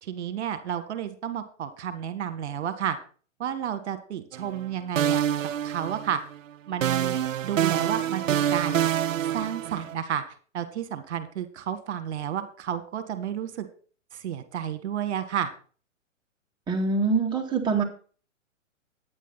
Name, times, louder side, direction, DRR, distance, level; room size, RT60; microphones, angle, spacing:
voice 1, 0.0-3.0 3.4-5.2 5.6-6.2 6.7-8.8 9.3-10.2 10.5-13.7 14.1-15.5, right 9 dB, 60° right, 10 dB, 1.7 m, -31 dB
sound 1, 4.3-4.7 5.0-6.4 6.8-9.9, right 10 dB, 80° right, 0.6 m, -26 dB
voice 2, 16.7-17.8, right 4 dB, 10° right, -1 dB, 2.4 m, -24 dB
10.0 x 9.6 x 4.1 m, 0.40 s
hypercardioid pair, 125°, 39 cm